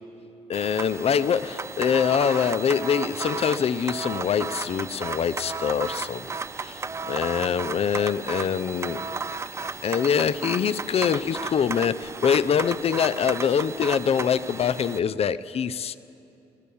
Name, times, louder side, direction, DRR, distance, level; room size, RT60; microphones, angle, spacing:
voice 1, 0.5-6.3 6.6-9.0 9.8-16.0, left 7 dB, 50° left, 14 dB, 0.5 m, -24 dB
sound 1, 0.5-15.0, right 4 dB, 20° right, 0.3 m, -34 dB
16.5 x 12.5 x 7.0 m, 2.8 s
supercardioid pair, 70°, 14 cm